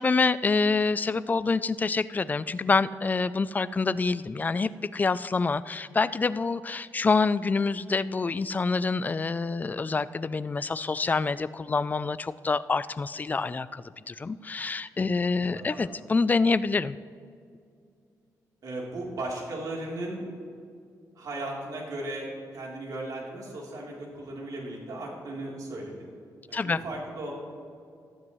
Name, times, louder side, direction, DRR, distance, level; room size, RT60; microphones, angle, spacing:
voice 1, 0.0-17.0 26.5-26.8, left 4 dB, 25° left, 15 dB, 0.4 m, -26 dB
voice 2, 15.4-15.8 18.6-20.3 21.2-22.3 22.5-26.1 26.5-27.3, right 2 dB, 65° right, -2 dB, 3.4 m, -36 dB
18.0 x 12.5 x 3.1 m, 2.3 s
cardioid pair, 105°, 7 cm